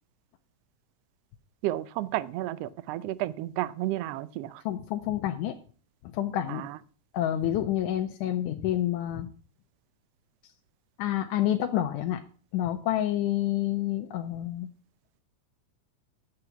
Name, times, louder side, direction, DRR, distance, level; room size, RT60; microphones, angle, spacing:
voice 1, 1.6-4.6 6.5-6.8, right 15 dB, 85° right, 17 dB, 1.4 m, -32 dB
voice 2, 4.7-5.6 6.1-6.6 7.1-9.3 11.0-12.2 12.5-14.7, left 12 dB, 85° left, 5 dB, 2.2 m, -28 dB
9.8 x 7.9 x 5.9 m, 0.40 s
omnidirectional pair, 3.5 m